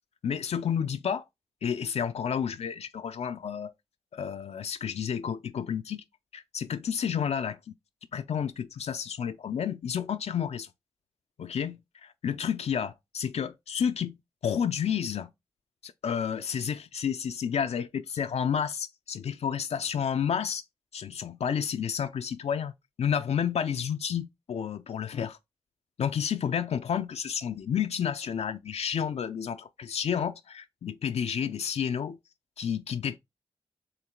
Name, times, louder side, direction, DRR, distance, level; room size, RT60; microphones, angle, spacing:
voice 1, 0.2-1.2 1.6-3.7 4.1-6.0 6.3-7.6 8.1-10.7 11.4-14.2 14.4-15.3 15.8-20.6 20.9-22.7 23.0-25.4 26.0-32.2 32.6-33.2, left 8 dB, 75° left, 0.4 m, -30 dB
4.5 x 3.1 x 3.7 m
cardioid pair, 45°, 11 cm